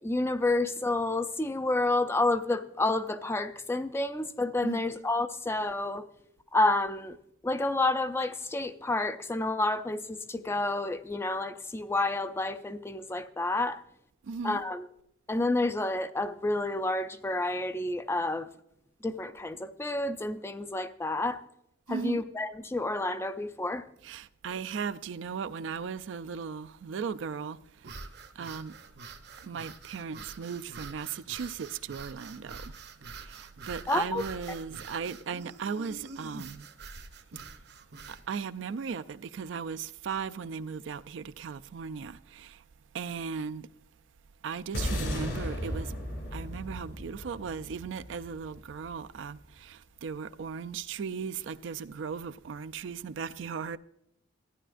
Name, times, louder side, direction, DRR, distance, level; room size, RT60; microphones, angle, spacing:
voice 1, 0.0-6.1 6.5-7.2 7.4-13.8 14.4-14.9 15.3-18.5 19.0-21.4 21.9-23.8 33.9-34.2, left 2 dB, 15° left, 0.4 m, -29 dB
voice 2, 14.2-14.6 21.9-22.2 24.0-27.9 28.4-28.7 29.4-32.8 33.1-36.7 38.1-42.6 42.9-43.7 44.4-45.9 46.3-53.8, right 6 dB, 80° right, 0.4 m, -37 dB
sound 1, 27.8-38.3, right 4 dB, 60° right, 0.8 m, -46 dB
sound 2, 44.7-49.2, equal, 65° left, 2.8 m, -35 dB
14.0 x 9.9 x 2.5 m
head